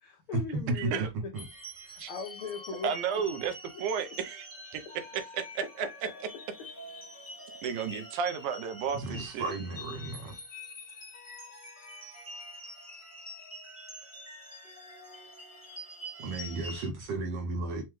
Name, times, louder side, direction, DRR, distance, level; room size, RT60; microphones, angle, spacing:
voice 1, 0.0-1.3 1.8-2.9 5.8-5.9, left 5 dB, 80° left, 1.2 m, -39 dB
voice 2, 0.7-1.1 2.0-2.1 2.8-3.5 3.8-4.8 5.1-5.9 7.6-9.5, right 7 dB, 85° right, 2.1 m, -33 dB
sound 1, 1.3-16.9, left 1 dB, 15° left, 0.8 m, -46 dB
voice 3, 9.0-10.4 16.2-17.8, right 3 dB, 65° right, 1.6 m, -34 dB
5.7 x 2.2 x 3.1 m
omnidirectional pair, 3.4 m